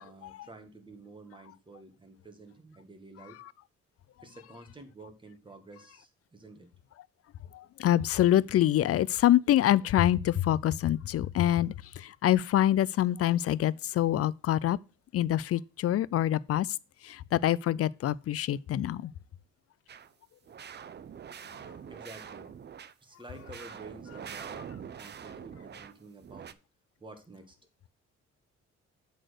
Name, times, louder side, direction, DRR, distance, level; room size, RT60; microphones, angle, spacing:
voice 1, 0.0-3.4 4.2-6.7 21.9-22.5 23.0-26.5 27.0-27.6, right 2 dB, 15° right, 1.8 m, -50 dB
voice 2, 7.5-14.8 15.1-16.8 17.0-19.1, left 12 dB, 50° left, 0.4 m, -26 dB
sound 1, 19.9-20.1 20.5-22.9 23.3-25.9 26.2-26.5, right 8 dB, 35° right, 0.5 m, -44 dB
7.7 x 4.2 x 6.5 m
cardioid pair, 90°, 30 cm